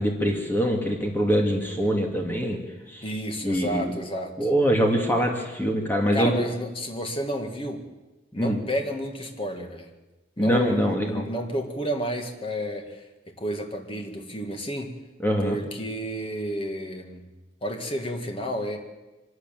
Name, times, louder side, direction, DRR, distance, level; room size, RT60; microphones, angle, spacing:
voice 1, 0.0-2.6 2.9-3.0 3.4-3.9 4.4-6.3 8.4-8.6 10.4-11.3 15.2-15.6, equal, 10° left, 1 dB, 2.5 m, -24 dB
voice 2, 3.0-4.5 6.1-7.9 8.3-9.9 10.4-14.9 15.4-17.2 17.6-18.8, equal, 30° left, 4 dB, 2.2 m, -31 dB
24.5 x 12.5 x 9.2 m, 1.1 s
head